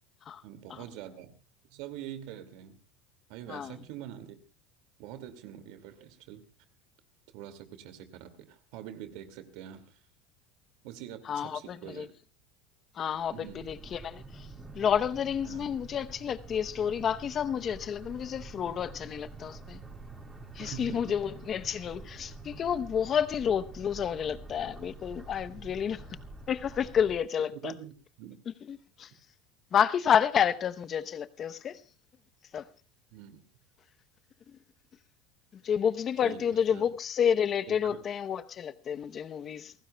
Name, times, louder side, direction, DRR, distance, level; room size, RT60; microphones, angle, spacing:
voice 1, 0.4-1.3 1.7-2.8 3.3-4.4 5.0-6.4 7.3-10.0 10.8-12.2 13.3-13.7 15.4-15.7 20.6-21.2 27.5-28.4 33.1-33.4 36.2-36.9 37.7-38.0, right 11 dB, 70° right, 2.2 m, -45 dB
voice 2, 11.3-12.1 13.0-14.2 14.7-19.8 20.6-26.0 26.5-27.7 28.7-29.1 29.7-31.8 32.5-32.6 35.6-39.7, left 8 dB, 35° left, 0.8 m, -30 dB
sound 1, 13.1-27.2, right 3 dB, 15° right, 4.5 m, -47 dB
28.5 x 15.5 x 2.3 m
supercardioid pair, 125°, 0 cm